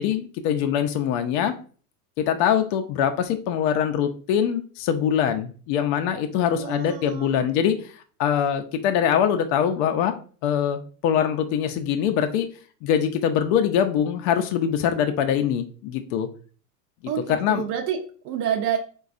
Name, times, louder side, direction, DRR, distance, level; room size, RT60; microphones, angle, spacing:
voice 1, 0.0-1.5 2.2-10.1 10.4-12.5 12.8-16.3 17.4-17.7, left 9 dB, 55° left, 6 dB, 0.5 m, -23 dB
voice 2, 6.5-7.5 17.1-18.8, right 9 dB, 50° right, 2 dB, 0.5 m, -28 dB
3.9 x 2.3 x 2.4 m, 0.41 s
supercardioid pair, 110°, 46 cm